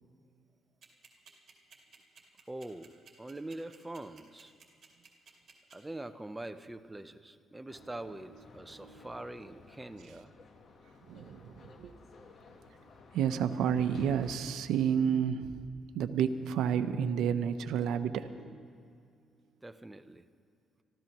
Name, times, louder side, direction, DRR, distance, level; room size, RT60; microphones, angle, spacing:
sound 1, 0.8-5.7, right 6 dB, 50° right, 2.6 m, -55 dB
voice 1, 2.5-4.5 5.7-10.3 19.6-20.3, right 1 dB, 15° right, 10 dB, 0.7 m, -44 dB
sound 2, 7.7-14.4, left 4 dB, 55° left, 1.3 m, -54 dB
voice 2, 8.8-9.1 11.1-11.9 13.1-15.5 15.9-18.7, right 8 dB, 85° right, 9 dB, 0.7 m, -30 dB
26.0 x 14.0 x 3.0 m, 2.3 s
cardioid pair, 90°, 0 cm